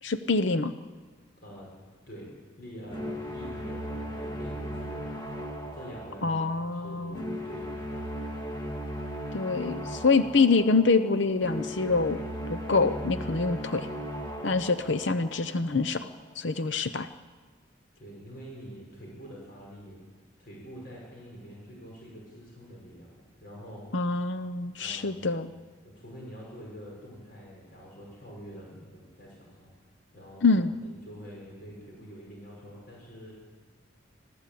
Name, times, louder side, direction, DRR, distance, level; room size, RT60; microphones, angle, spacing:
voice 1, 0.0-0.7 6.2-7.4 9.3-12.2 12.5-13.9 14.4-16.1 16.4-17.1 23.9-25.5 30.4-30.7, left 4 dB, 70° left, 11 dB, 0.8 m, -25 dB
voice 2, 1.4-1.7 2.1-8.4 18.0-20.0 20.4-23.8 24.8-25.3 25.8-29.7 30.1-33.3, equal, 50° left, -3 dB, 5.7 m, -46 dB
sound 1, 2.9-16.0, equal, 20° left, 2.0 m, -37 dB
25.5 x 16.0 x 8.5 m, 1.4 s
head